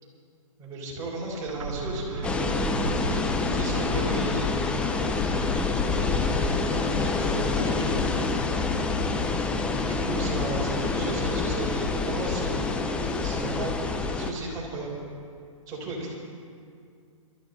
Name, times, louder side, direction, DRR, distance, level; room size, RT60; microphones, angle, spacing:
voice 1, 0.6-2.6 3.5-5.0 5.8-8.0 9.7-12.8 13.2-13.8 14.1-14.9 15.7-16.1, right 2 dB, 20° right, -5 dB, 4.5 m, -35 dB
sound 1, 1.2-7.0, right 3 dB, 60° right, 1.9 m, -38 dB
sound 2, 2.2-14.3, left 4 dB, 5° left, 0.5 m, -27 dB
22.0 x 13.0 x 4.0 m, 2.3 s
hypercardioid pair, 155°, 17 cm